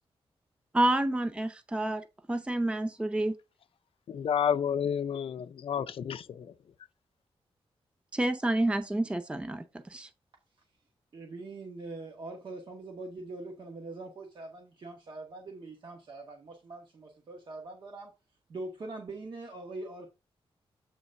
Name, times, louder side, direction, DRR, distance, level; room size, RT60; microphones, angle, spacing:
voice 1, 0.7-3.4 8.1-10.1, right 1 dB, 10° right, 0.5 m, -29 dB
voice 2, 4.1-6.5, left 8 dB, 60° left, 0.4 m, -30 dB
voice 3, 11.1-18.1 18.5-20.1, right 2 dB, 50° right, 1.2 m, -43 dB
8.2 x 3.3 x 5.2 m
wide cardioid pair, 170°, 10 cm